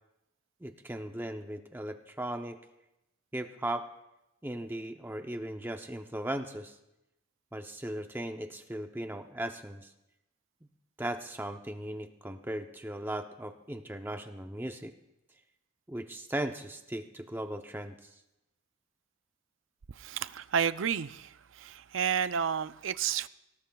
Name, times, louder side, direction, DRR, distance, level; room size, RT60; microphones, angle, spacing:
voice 1, 0.6-2.6 3.3-3.9 4.4-6.8 7.5-9.9 11.0-14.9 15.9-18.2, right 1 dB, 10° right, 0.6 m, -37 dB
voice 2, 20.0-21.2 21.6-23.3, right 8 dB, 70° right, 0.5 m, -30 dB
23.5 x 18.0 x 2.3 m
head